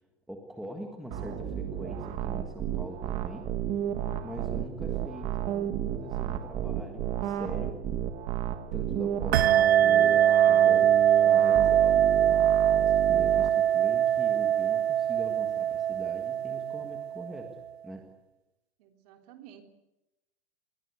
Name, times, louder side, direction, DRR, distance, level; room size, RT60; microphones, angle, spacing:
voice 1, 0.3-3.5 4.2-7.8 8.7-11.0 11.2-17.6 17.8-18.0, equal, ahead, 2 dB, 1.7 m, -43 dB
sound 1, 1.1-13.5, right 10 dB, 20° right, 1.7 m, -33 dB
sound 2, 9.3-17.5, right 10 dB, 70° right, 1.1 m, -23 dB
voice 2, 18.8-19.6, right 11 dB, 35° right, 5 dB, 3.6 m, -52 dB
28.0 x 21.5 x 8.1 m, 0.94 s
supercardioid pair, 180°, 33 cm